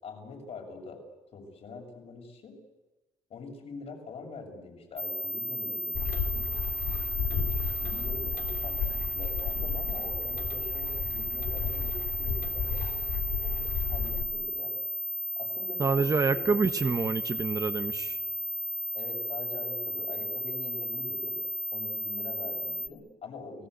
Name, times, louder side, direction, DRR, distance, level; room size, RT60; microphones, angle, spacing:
voice 1, 0.0-1.0 1.3-2.5 3.3-6.5 7.2-7.5 7.8-12.7 13.9-14.8 15.4-16.7 18.9-21.4 21.7-23.7, left 4 dB, 60° left, 1 dB, 7.2 m, -44 dB
sound 1, 5.0-22.9, equal, 15° right, 2.9 m, -34 dB
sound 2, 5.9-14.2, left 7 dB, 80° left, 3.3 m, -33 dB
voice 2, 15.8-18.2, right 4 dB, 30° right, 8 dB, 1.3 m, -27 dB
30.0 x 19.0 x 8.2 m, 1.1 s
cardioid pair, 100°, 13 cm